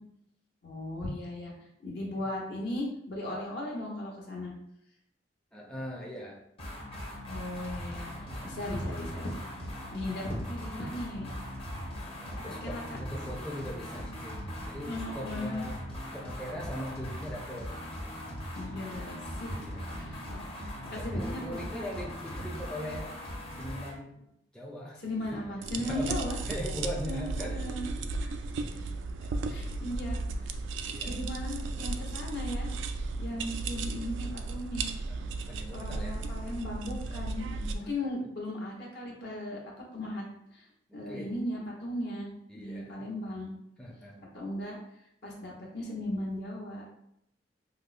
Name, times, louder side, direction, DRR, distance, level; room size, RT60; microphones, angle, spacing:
voice 1, 0.6-1.5 1.8-4.5 7.3-9.5 9.9-11.3 12.4-13.0 14.8-15.7 18.5-19.5 20.0-21.8 25.0-26.4 27.0-27.9 28.2-28.3 29.5-30.6 31.0-32.7 33.2-34.9 35.7-39.6 39.9-40.2 40.5-40.7 40.9-42.3 42.5-43.5 44.3-44.8 45.2-46.8, left 1 dB, 65° left, -2 dB, 0.9 m, -37 dB
voice 2, 1.9-2.2 5.5-6.4 8.2-8.6 9.9-10.0 12.2-15.8 16.1-17.8 19.6-20.1 20.9-23.1 23.6-24.3 24.5-25.0 25.3-25.4 25.8-27.6 30.9-31.2 33.2-33.5 35.1-36.2 37.0-37.2 38.0-38.1 40.9-41.4 42.5-42.9 43.8-44.2, equal, 5° left, -4 dB, 0.5 m, -41 dB
sound 1, 6.6-24.0, equal, 35° left, 0.8 m, -40 dB
sound 2, 25.6-37.8, right 3 dB, 80° right, 0.3 m, -35 dB
5.1 x 2.0 x 2.4 m, 0.78 s
head